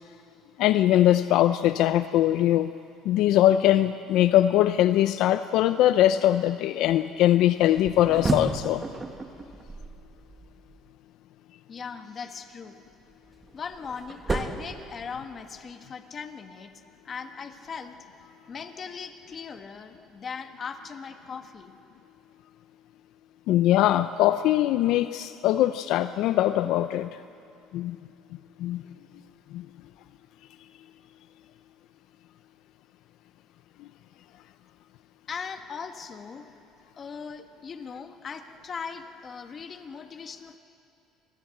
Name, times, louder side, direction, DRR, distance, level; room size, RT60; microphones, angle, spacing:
voice 1, 0.6-2.8 3.0-8.8 23.5-27.2 27.7-28.0 28.6-28.8 29.5-29.7, left 13 dB, 70° left, 11 dB, 0.6 m, -22 dB
sound 1, 7.7-10.8 13.0-15.6, right 3 dB, 20° right, 1.8 m, -33 dB
voice 2, 11.7-12.8 13.5-16.7 17.0-18.0 18.5-21.7 35.3-36.5 37.0-40.6, left 6 dB, 35° left, 6 dB, 1.7 m, -39 dB
28.0 x 21.0 x 7.8 m, 2.6 s
cardioid pair, 120°, 0 cm